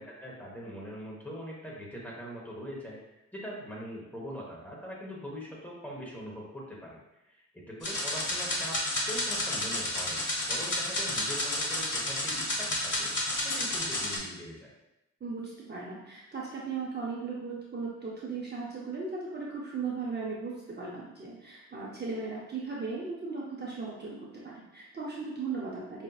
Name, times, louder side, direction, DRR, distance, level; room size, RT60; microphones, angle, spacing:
voice 1, 0.0-8.8 9.1-13.1 13.4-14.7, equal, 5° left, -4 dB, 1.0 m, -42 dB
sound 1, 7.8-14.2, left 1 dB, 70° left, 1.1 m, -31 dB
voice 2, 15.2-26.0, right 4 dB, 35° right, -5 dB, 0.6 m, -37 dB
5.1 x 2.7 x 2.3 m, 0.91 s
wide cardioid pair, 115°, 31 cm